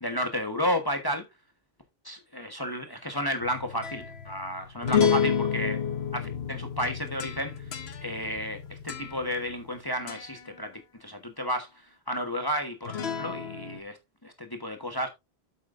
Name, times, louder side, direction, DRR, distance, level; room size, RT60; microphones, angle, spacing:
voice 1, 0.0-1.2 2.0-5.8 6.1-7.5 8.0-10.7 11.0-11.7 12.1-14.0 14.2-15.1, equal, 20° left, 1.3 m, -32 dB
sound 1, 3.4-9.8 10.1-10.5 12.8-13.8, left 7 dB, 75° left, 1.2 m, -30 dB
8.5 x 8.1 x 2.5 m
omnidirectional pair, 1.1 m